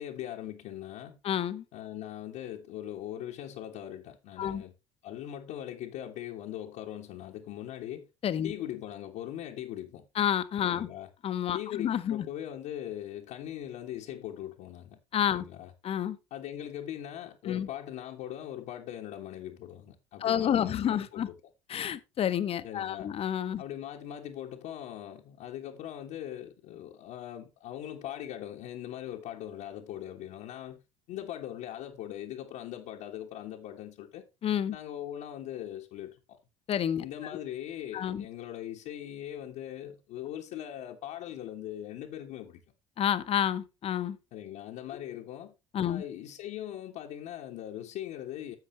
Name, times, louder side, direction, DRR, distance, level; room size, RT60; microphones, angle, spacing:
voice 1, 0.0-1.2 1.7-4.7 5.0-8.1 8.4-10.1 10.6-11.1 11.5-15.0 15.3-15.7 16.3-21.4 22.6-23.1 23.6-30.8 31.1-34.3 34.7-36.4 37.0-42.6 44.3-45.5 45.8-48.6, left 11 dB, 60° left, 1.2 m, -40 dB
voice 2, 1.2-1.6 4.4-4.6 8.2-8.5 10.2-10.9 11.2-12.2 15.1-15.5 15.8-16.2 17.4-17.7 20.2-21.3 21.7-23.6 34.4-34.8 36.7-37.1 37.9-38.2 43.0-44.2 45.7-46.0, left 9 dB, 40° left, 0.9 m, -29 dB
10.5 x 7.7 x 3.1 m
figure-of-eight pair, 60°, 15 cm